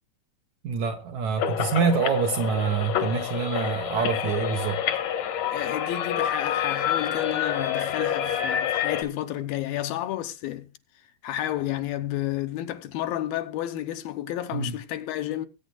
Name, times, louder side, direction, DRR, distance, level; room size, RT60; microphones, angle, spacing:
voice 1, 0.6-4.8 14.5-14.8, right 6 dB, 70° right, 1.9 m, -26 dB
sound 1, 1.4-9.0, left 9 dB, 60° left, 1.9 m, -28 dB
voice 2, 5.5-10.7 11.2-15.5, left 13 dB, 80° left, 2.5 m, -31 dB
20.5 x 9.1 x 2.3 m
omnidirectional pair, 4.4 m